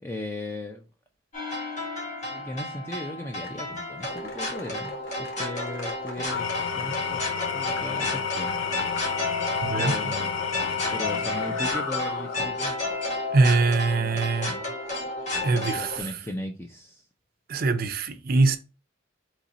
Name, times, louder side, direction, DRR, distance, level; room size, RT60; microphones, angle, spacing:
voice 1, 0.0-0.8 2.3-8.5 9.7-10.3 10.9-12.7 14.0-14.8 15.5-17.0, left 1 dB, 10° left, 0.4 m, -37 dB
sound 1, 1.3-16.0, left 2 dB, 35° left, 1.7 m, -31 dB
sound 2, 3.4-3.6 4.0-7.0 7.8-9.1, left 3 dB, 85° left, 1.2 m, -45 dB
Engine / Tools, 6.2-12.6, left 7 dB, 70° left, 0.6 m, -31 dB
voice 2, 9.7-10.1 13.3-14.5 15.4-16.0 17.5-18.6, right 3 dB, 45° right, 0.5 m, -23 dB
4.2 x 3.0 x 3.8 m
head